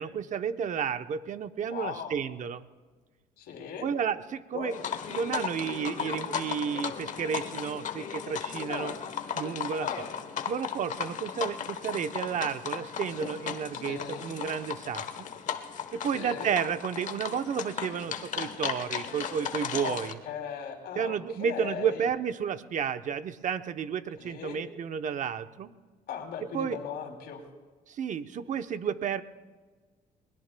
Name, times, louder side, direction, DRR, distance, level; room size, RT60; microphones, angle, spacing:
voice 1, 0.0-2.6 3.8-4.7 5.1-8.9 9.3-9.9 10.5-15.3 15.9-20.2 21.0-25.7 26.5-26.8 27.9-29.2, right 7 dB, 50° right, 10 dB, 0.8 m, -32 dB
voice 2, 1.7-2.2 3.4-3.9 4.5-4.9 8.7-9.0 9.8-10.1 13.7-14.3 16.1-16.5 19.8-22.0 24.2-24.6 26.1-27.4, left 7 dB, 70° left, 2 dB, 2.9 m, -38 dB
sound 1, 4.7-20.1, left 8 dB, 45° left, 1.0 m, -36 dB
22.0 x 20.5 x 2.2 m, 1.4 s
cardioid pair, 110°, 17 cm